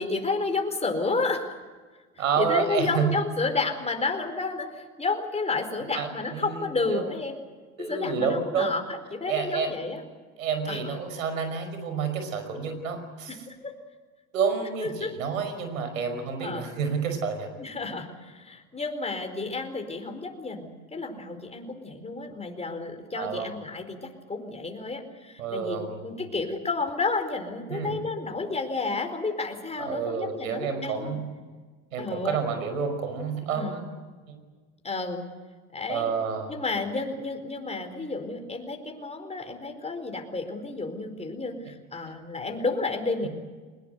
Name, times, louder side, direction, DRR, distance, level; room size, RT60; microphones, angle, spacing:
voice 1, 0.0-1.6 2.1-7.4 7.8-10.0 10.7-10.9 13.3-13.7 15.0-15.1 16.4-16.7 17.6-31.2 32.0-32.4 33.5-33.8 34.8-35.2 35.7-36.1 36.5-43.3, left 3 dB, 15° left, 5 dB, 4.6 m, -31 dB
voice 2, 2.2-3.1 5.9-7.1 7.8-8.7 9.3-9.7 10.4-13.3 14.3-17.5 23.2-23.5 25.4-26.2 27.7-28.0 29.8-31.2 31.9-33.8 34.3-34.4 35.9-36.5 43.2-43.3, right 6 dB, 85° right, 8 dB, 5.5 m, -29 dB
23.0 x 20.5 x 8.2 m, 1.4 s
hypercardioid pair, 85°, 40 cm